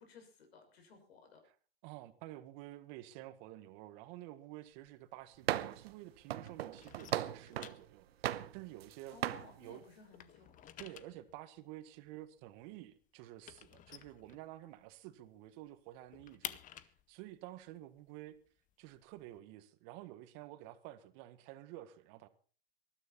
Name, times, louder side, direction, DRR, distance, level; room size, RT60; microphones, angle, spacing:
voice 1, 0.0-1.4 9.1-10.7, left 4 dB, 75° left, 6.4 m, -58 dB
voice 2, 1.8-8.1 8.5-9.2 9.6-9.8 10.8-18.3 18.8-22.3, right 15 dB, 45° right, 1.7 m, -51 dB
sound 1, 4.7-6.1 6.4-9.6 9.9-14.9 15.3-15.4 15.7-19.4, left 12 dB, 25° left, 0.8 m, -52 dB
sound 2, 5.5-5.9 6.3-7.8 8.2-8.9 9.2-9.5, right 12 dB, 75° right, 1.0 m, -37 dB
20.0 x 13.0 x 4.3 m
hypercardioid pair, 125°, 31 cm